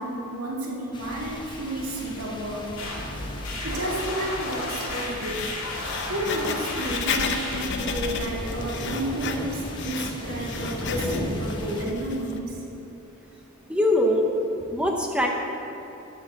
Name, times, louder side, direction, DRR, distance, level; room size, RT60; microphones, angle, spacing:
voice 1, 0.0-2.8 3.6-5.5 6.0-12.6, right 1 dB, 90° right, -4 dB, 2.2 m, -31 dB
sound 1, 0.9-11.8, equal, 20° left, 1.0 m, -37 dB
sound 2, 2.8-7.7, left 2 dB, 80° left, 2.5 m, -33 dB
Writing, 3.2-12.4, left 5 dB, 55° left, 0.7 m, -34 dB
voice 2, 13.7-14.2 14.7-15.3, left 1 dB, 5° right, 0 dB, 0.8 m, -22 dB
12.0 x 5.6 x 7.4 m, 3.0 s
head